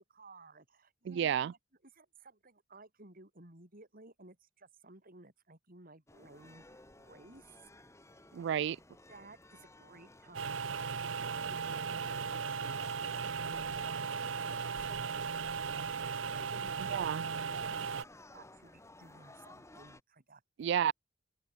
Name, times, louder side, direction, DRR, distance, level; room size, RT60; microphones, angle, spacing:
voice 1, 0.0-7.9 9.1-10.8 11.5-13.1 13.4-15.2 16.3-17.1 17.6-17.9 18.3-20.7, right 2 dB, 50° right, 4.6 m, -57 dB
voice 2, 1.1-1.5 8.3-8.8 16.9-17.2 20.6-20.9, right 9 dB, 65° right, 0.3 m, -31 dB
sound 1, 6.1-20.0, left 1 dB, 15° left, 3.5 m, -56 dB
sound 2, 10.3-18.0, right 6 dB, 85° right, 0.8 m, -37 dB
open air
head